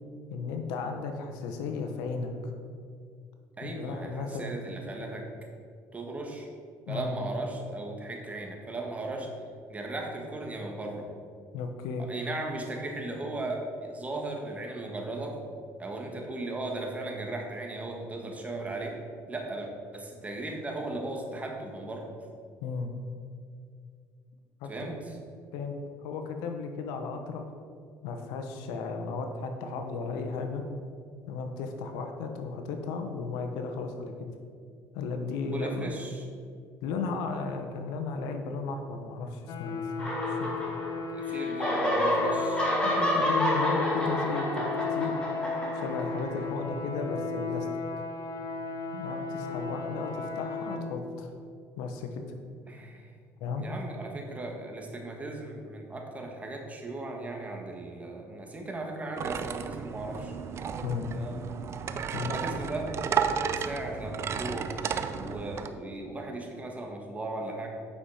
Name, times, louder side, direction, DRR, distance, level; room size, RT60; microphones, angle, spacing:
voice 1, 0.3-2.5 3.6-4.5 6.9-7.1 11.5-12.1 22.6-22.9 24.6-24.9 25.5-25.7 26.0-27.5 28.0-30.6 31.3-34.3 34.9-35.9 36.8-40.5 42.8-45.1 45.7-47.7 48.9-51.3 51.8-52.2 53.4-53.7 60.8-61.1 62.1-62.4, left 4 dB, 85° left, 5 dB, 1.0 m, -35 dB
voice 2, 3.6-5.3 5.9-6.5 6.9-9.3 9.7-11.1 12.1-15.4 15.8-19.0 19.3-22.1 24.7-25.0 35.4-36.2 40.9-42.7 52.7-53.1 53.6-60.4 61.1-61.4 62.2-62.9 63.5-67.7, right 2 dB, 20° right, 1 dB, 1.6 m, -37 dB
sound 1, 39.5-50.8, left 4 dB, 60° left, 1.0 m, -35 dB
sound 2, 40.0-41.1 41.4-46.4, equal, 15° left, 2.1 m, -29 dB
sound 3, 59.2-65.7, right 7 dB, 45° right, 0.5 m, -33 dB
8.5 x 5.8 x 4.9 m, 2.2 s
cardioid pair, 100°, 7 cm